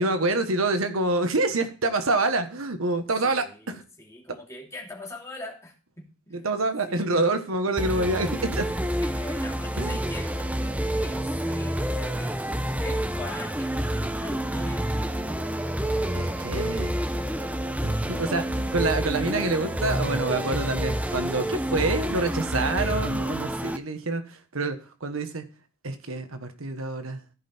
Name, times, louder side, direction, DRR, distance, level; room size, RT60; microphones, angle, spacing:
voice 1, 0.0-3.8 6.3-8.7 9.8-10.0 16.1-16.9 17.8-25.4 25.8-27.2, right 2 dB, 90° right, 8 dB, 1.4 m, -27 dB
voice 2, 3.2-3.7 4.0-5.7 6.3-6.5 6.9-7.3 9.0-12.4 12.8-14.9, left 2 dB, 15° left, -1 dB, 2.6 m, -41 dB
sound 1, 7.8-23.8, right 1 dB, 5° right, 0.7 m, -28 dB
14.5 x 5.5 x 4.3 m, 0.36 s
head